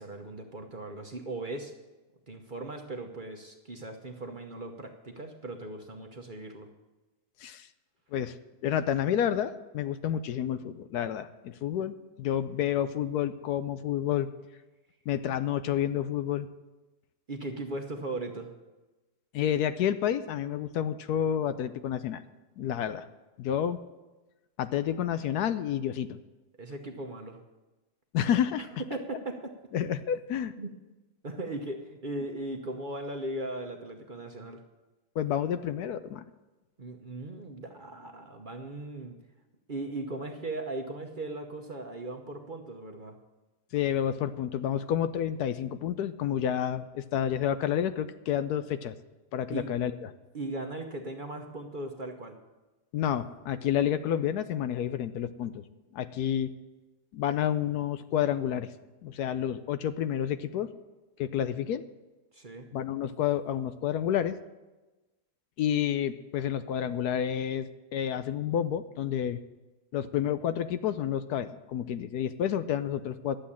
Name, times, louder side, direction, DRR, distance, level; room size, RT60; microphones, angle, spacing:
voice 1, 0.0-1.7 2.3-6.7 17.3-18.5 26.6-27.4 28.6-29.4 30.6-30.7 31.2-34.6 36.8-39.2 39.7-43.2 49.5-49.7 50.3-52.4 62.3-62.7, right 2 dB, 35° right, 3 dB, 0.9 m, -38 dB
voice 2, 8.6-14.3 15.1-16.5 19.3-22.2 22.6-23.1 23.4-23.8 24.6-26.2 28.1-28.7 29.7-30.5 35.2-36.2 43.7-48.9 49.3-50.1 52.9-55.6 55.9-56.5 57.1-58.7 59.0-60.7 61.2-61.8 62.7-64.4 65.6-69.4 69.9-73.4, left 10 dB, 75° left, 12 dB, 1.1 m, -29 dB
11.5 x 7.8 x 8.6 m, 1.1 s
omnidirectional pair, 1.8 m